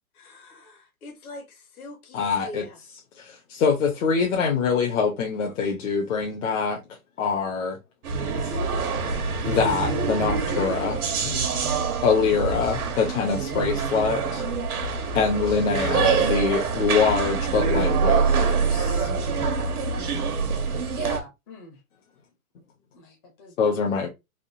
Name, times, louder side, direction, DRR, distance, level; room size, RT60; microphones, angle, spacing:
voice 1, 0.1-2.8, left 1 dB, 75° left, 1.5 m, -42 dB
voice 2, 2.1-2.6 3.2-6.8 7.2-7.8 8.4-8.5 9.4-11.4 12.0-14.4 15.1-19.1 19.6-19.7 20.0-20.2 20.7-20.8 23.6-24.1, left 5 dB, 60° left, 0.9 m, -24 dB
sound 1, 8.0-21.2, right 5 dB, 90° right, 1.0 m, -25 dB
voice 3, 20.9-21.8 22.9-23.8, left 1 dB, 20° left, 0.5 m, -42 dB
3.6 x 2.2 x 2.6 m
hypercardioid pair, 150°, 43 cm